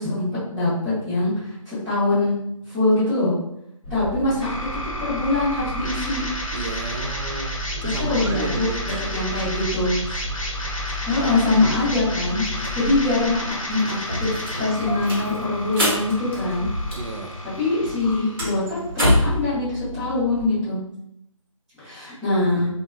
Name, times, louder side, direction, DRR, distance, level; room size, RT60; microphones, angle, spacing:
voice 1, 0.0-2.4 2.7-3.3 3.9-4.5 5.0-6.2 7.8-8.7 9.1-10.0 11.1-12.5 12.7-16.7 17.6-18.8 19.2-20.8 21.8-22.7, left 2 dB, 5° right, -15 dB, 0.8 m, -23 dB
Engine starting, 3.8-17.1, right 1 dB, 20° left, 0.5 m, -34 dB
sound 1, 4.4-20.4, left 1 dB, 70° left, 0.7 m, -32 dB
voice 2, 6.5-9.0 10.1-10.2 12.5-12.9 17.0-17.4, right 2 dB, 60° right, 2 dB, 0.4 m, -32 dB
sound 2, 13.0-13.1 13.3-17.2 17.5-19.4, left 1 dB, 40° right, 1.1 m, -25 dB
3.0 x 2.2 x 2.2 m, 0.77 s
figure-of-eight pair, 155°, 18 cm